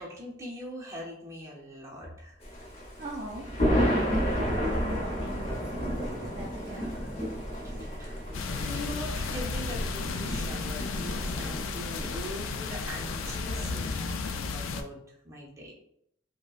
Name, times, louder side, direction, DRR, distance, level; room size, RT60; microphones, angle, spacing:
voice 1, 0.0-2.4 5.3-5.4 6.6-7.1 7.6-8.3 8.6-15.7, equal, 15° right, -4 dB, 0.7 m, -42 dB
Thunder, 2.4-13.9, equal, 30° left, 0.9 m, -32 dB
voice 2, 3.0-3.5 3.9-7.0, right 1 dB, 35° right, -2 dB, 0.4 m, -41 dB
sound 1, 8.3-14.8, left 4 dB, 85° left, 0.4 m, -34 dB
5.0 x 2.1 x 2.4 m, 0.72 s
head